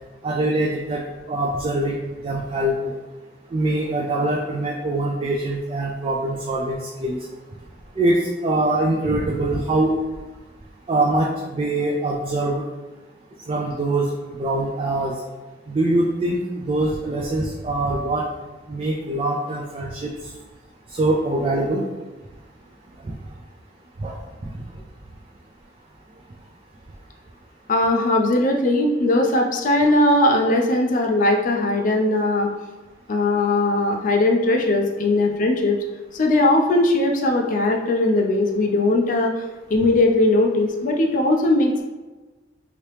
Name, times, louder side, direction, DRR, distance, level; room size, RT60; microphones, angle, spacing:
voice 1, 0.2-2.0 2.2-3.0 3.5-7.2 8.0-9.9 10.9-12.6 13.5-14.1 14.4-15.2 15.7-18.3 18.7-20.1 20.9-21.8 23.0-23.1 24.0-24.5, right 2 dB, 30° right, -2 dB, 0.3 m, -23 dB
voice 2, 27.7-32.5 33.1-35.8 36.1-39.3 39.7-41.8, left 2 dB, 45° left, 2 dB, 0.4 m, -19 dB
3.0 x 2.8 x 3.2 m, 1.2 s
head